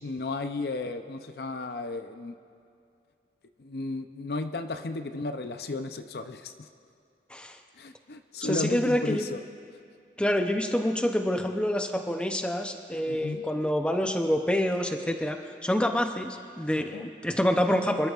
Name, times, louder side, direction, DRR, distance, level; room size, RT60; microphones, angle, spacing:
voice 1, 0.0-2.3 3.6-6.5 7.8-9.4 13.1-13.4 16.8-17.1, left 3 dB, 65° left, 8 dB, 0.5 m, -34 dB
voice 2, 8.4-9.2 10.2-18.1, equal, 5° left, 5 dB, 0.6 m, -27 dB
26.0 x 12.5 x 2.4 m, 2.5 s
head